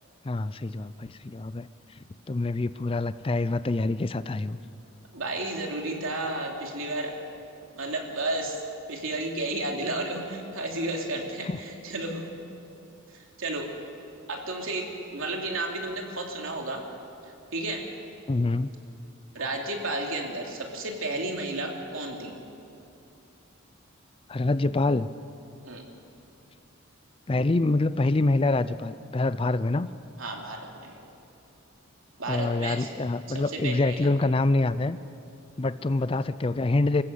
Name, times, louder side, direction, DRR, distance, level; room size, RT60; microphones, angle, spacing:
voice 1, 0.2-1.7 2.3-4.6 11.5-11.6 18.3-18.7 24.3-25.1 27.3-29.9 32.3-35.0 35.6-37.0, left 2 dB, 25° left, 15 dB, 0.4 m, -26 dB
voice 2, 5.1-7.2 7.7-8.6 8.9-12.2 13.1-13.7 14.3-16.8 17.5-17.8 19.3-22.3 25.6-25.8 30.2-30.9 32.2-32.9 33.3-34.1, right 2 dB, 75° right, 1 dB, 3.0 m, -32 dB
25.5 x 14.5 x 7.9 m, 2.7 s
head